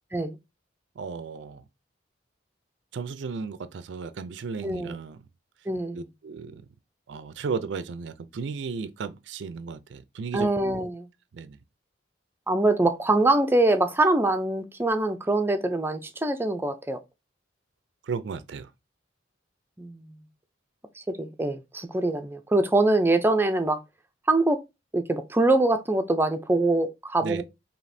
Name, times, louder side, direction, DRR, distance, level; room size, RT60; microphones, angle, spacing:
voice 1, 1.0-1.6 2.9-5.2 5.9-6.6 7.1-10.5 11.3-11.6 18.0-18.7 27.2-27.4, right 5 dB, 70° right, 0.4 m, -34 dB
voice 2, 4.6-5.0 5.7-6.0 10.3-11.1 12.5-17.0 19.8-20.1 21.0-23.8 24.3-24.6 24.9-27.4, right 2 dB, 10° right, 0.5 m, -24 dB
5.1 x 2.8 x 2.6 m
head